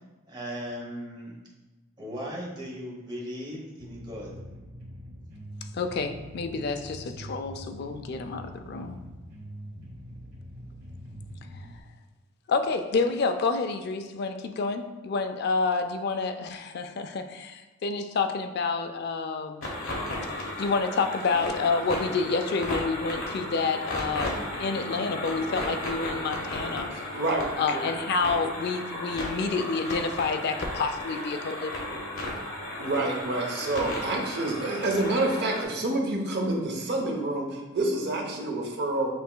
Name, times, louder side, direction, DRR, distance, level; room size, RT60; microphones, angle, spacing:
voice 1, 0.3-1.3 2.0-4.3, equal, 20° right, -3 dB, 0.9 m, -37 dB
sound 1, 3.8-11.8, equal, 85° right, 0.9 m, -43 dB
voice 2, 5.7-9.0 12.5-19.7 20.6-26.9 27.6-31.8, left 4 dB, 50° left, 7 dB, 0.3 m, -29 dB
sound 2, 19.6-35.7, left 1 dB, 75° left, 1.1 m, -34 dB
voice 3, 26.9-27.8 32.8-39.1, right 2 dB, 50° right, 1 dB, 0.8 m, -28 dB
7.8 x 2.9 x 2.2 m, 1.2 s
head